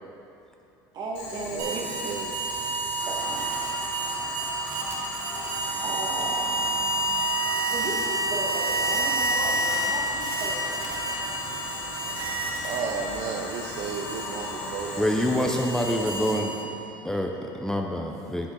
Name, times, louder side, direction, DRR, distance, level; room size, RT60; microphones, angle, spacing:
voice 1, 0.9-2.1 3.1-3.5 5.8-6.5 7.6-11.0, right 2 dB, 45° right, -2 dB, 1.6 m, -35 dB
Boiling, 1.1-16.3, left 2 dB, 60° left, 1.8 m, -40 dB
voice 2, 1.5-2.4 12.6-17.1, right 6 dB, 60° right, 2 dB, 0.6 m, -34 dB
sound 1, 1.6-13.1 13.5-16.9, right 2 dB, 80° right, 1.6 m, -29 dB
sound 2, 3.0-15.7, left 3 dB, 90° left, 1.1 m, -40 dB
voice 3, 15.0-16.5 17.0-18.5, left 1 dB, 5° left, 1 dB, 0.5 m, -26 dB
9.7 x 6.2 x 3.8 m, 2.8 s
supercardioid pair, 115°, 10 cm